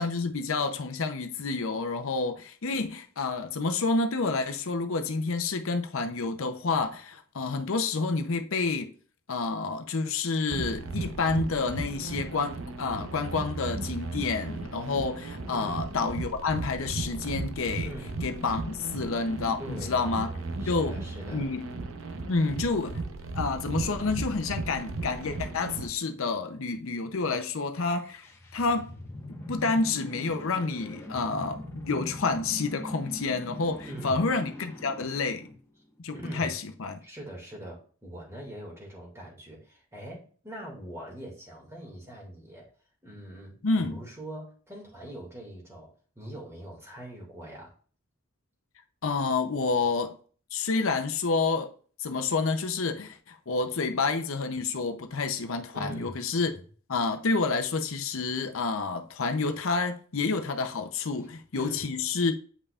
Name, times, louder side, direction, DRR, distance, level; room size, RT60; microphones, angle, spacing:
voice 1, 0.0-8.9 9.3-17.9 18.2-20.3 20.7-21.0 21.3-21.7 22.3-23.0 23.3-28.3 28.5-28.9 29.5-35.5 36.0-37.0 43.6-44.0 49.0-50.2 50.5-51.7 52.0-56.6 56.9-62.3, left 4 dB, 65° left, 0.7 m, -29 dB
sound 1, 10.5-25.9, right 3 dB, 65° right, 0.8 m, -36 dB
voice 2, 17.8-18.1 19.6-21.4 33.8-34.3 36.1-36.5 37.0-42.7 43.0-45.9 46.2-47.7 55.7-56.4 61.6-61.9, right 1 dB, 15° right, 2.2 m, -42 dB
sound 2, 27.9-36.0, left 1 dB, 10° left, 1.3 m, -42 dB
8.3 x 5.4 x 2.4 m
head